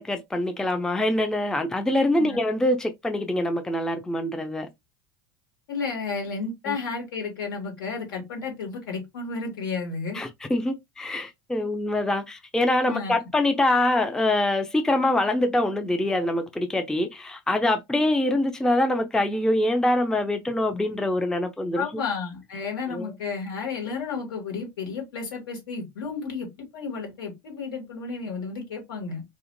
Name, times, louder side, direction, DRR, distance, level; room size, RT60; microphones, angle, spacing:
voice 1, 0.0-4.7 6.7-6.8 10.1-22.0 22.9-23.1, left 1 dB, 5° left, 0.4 m, -24 dB
voice 2, 5.7-10.2 12.8-13.1 21.7-29.2, left 5 dB, 75° left, 1.6 m, -32 dB
2.4 x 2.4 x 2.6 m
hypercardioid pair, 90°, 12 cm